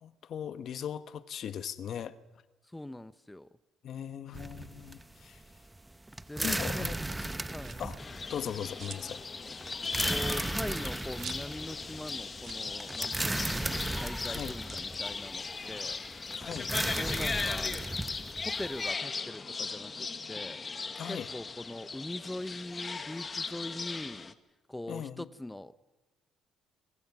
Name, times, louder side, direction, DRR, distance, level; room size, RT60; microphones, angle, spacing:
voice 1, 0.0-2.2 3.8-5.4 6.4-7.0 7.8-8.0 8.3-9.2 14.3-14.5 16.3-16.7 21.0-21.3 24.9-25.3, left 9 dB, 55° left, 1.2 m, -39 dB
voice 2, 2.6-3.5 6.3-6.9 7.4-7.8 10.1-16.0 17.0-17.7 18.4-20.6 21.1-24.3 24.7-25.9, left 1 dB, 10° left, 0.7 m, -42 dB
sound 1, 4.3-18.9, right 2 dB, 10° right, 1.1 m, -36 dB
sound 2, 7.5-8.0 8.4-9.2 9.5-9.6 9.9-11.8 12.1-12.2 12.4-12.7 12.9-13.0 13.4-13.7 14.5-16.2 16.6-18.1, right 8 dB, 55° right, 2.4 m, -50 dB
sound 3, 8.0-24.3, left 4 dB, 30° left, 1.5 m, -38 dB
28.0 x 23.5 x 6.1 m
cardioid pair, 90°, 0 cm